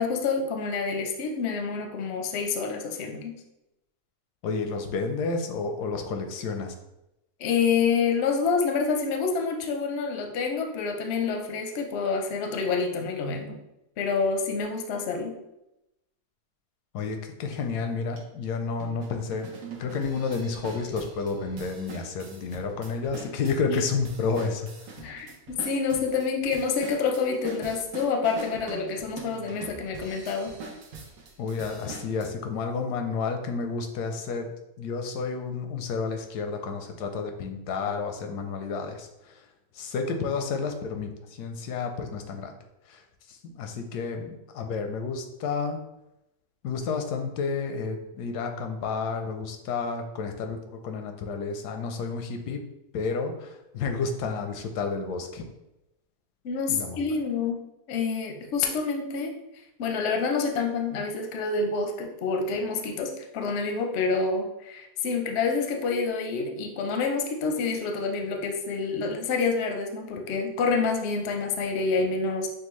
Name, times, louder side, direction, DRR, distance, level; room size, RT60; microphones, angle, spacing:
voice 1, 0.0-3.4 7.4-13.6 14.0-15.4 23.7-23.8 25.0-30.6 56.4-59.3 59.8-72.5, left 5 dB, 60° left, 3 dB, 0.7 m, -27 dB
voice 2, 4.4-6.7 16.9-19.5 19.8-24.7 31.4-34.5 34.8-39.4 39.7-42.6 42.9-43.0 43.3-45.8 46.6-52.6 52.9-55.4 56.7-57.0, left 4 dB, 85° left, 5 dB, 1.2 m, -31 dB
sound 1, 17.5-17.6 18.2-18.3 18.8-32.3, right 3 dB, 70° right, 1.1 m, -43 dB
6.3 x 2.2 x 3.1 m, 0.90 s
omnidirectional pair, 1.7 m